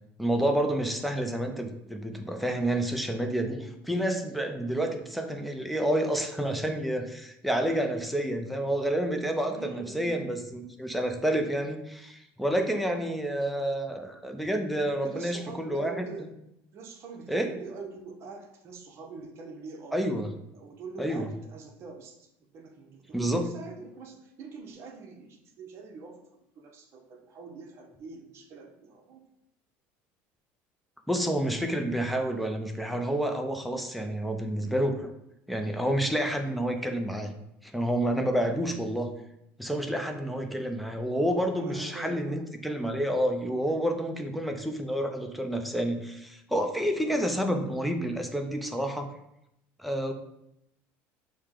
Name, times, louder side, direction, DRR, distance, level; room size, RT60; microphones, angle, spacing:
voice 1, 0.2-16.1 17.3-17.5 19.9-20.3 21.0-21.3 23.1-23.5 31.1-35.1 35.5-37.3 37.6-39.1 39.6-49.1 49.8-50.1, right 1 dB, ahead, 4 dB, 0.5 m, -29 dB
voice 2, 9.4-10.3 15.0-16.3 16.7-20.1 20.5-26.2 26.6-29.2 40.1-40.4 41.5-42.4 47.0-47.2, right 4 dB, 45° right, 2 dB, 0.8 m, -44 dB
6.5 x 2.2 x 3.7 m, 0.80 s
cardioid pair, 125°, 6 cm